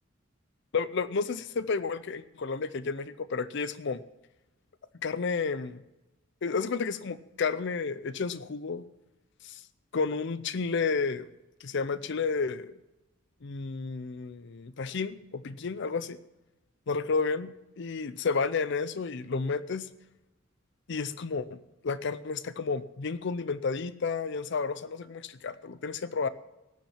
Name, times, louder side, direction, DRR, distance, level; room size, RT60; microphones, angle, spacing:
voice 1, 0.7-4.0 5.0-5.8 6.4-8.9 9.4-9.6 9.9-11.3 11.6-12.7 13.4-16.2 16.9-17.5 17.8-19.9 20.9-21.6 21.8-26.3, left 4 dB, 60° left, 14 dB, 0.6 m, -31 dB
18.5 x 7.4 x 5.7 m, 1.0 s
head